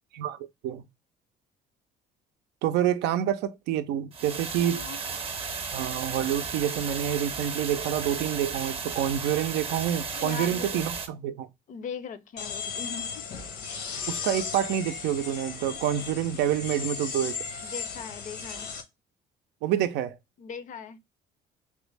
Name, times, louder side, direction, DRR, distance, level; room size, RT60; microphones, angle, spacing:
voice 1, 0.2-0.8 2.6-4.9 5.7-11.5 14.1-17.4 19.6-20.2, right 10 dB, 85° right, 0.5 m, -28 dB
sound 1, 4.1-11.1, right 5 dB, 35° right, 0.7 m, -34 dB
voice 2, 4.6-5.0 10.1-10.9 11.7-13.3 17.6-18.7 20.4-21.0, left 6 dB, 50° left, 0.5 m, -40 dB
sound 2, 12.4-18.8, left 6 dB, 85° left, 1.0 m, -36 dB
3.3 x 2.1 x 3.2 m
cardioid pair, 110°, 17 cm